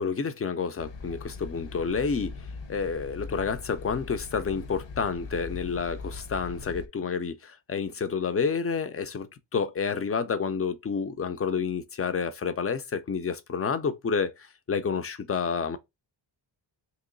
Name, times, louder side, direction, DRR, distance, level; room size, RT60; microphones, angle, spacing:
voice 1, 0.0-2.4 2.7-15.8, left 5 dB, 35° left, 0.4 m, -29 dB
sound 1, 0.8-6.9, left 4 dB, 70° left, 0.7 m, -40 dB
3.0 x 2.9 x 3.7 m
wide cardioid pair, 145°, 46 cm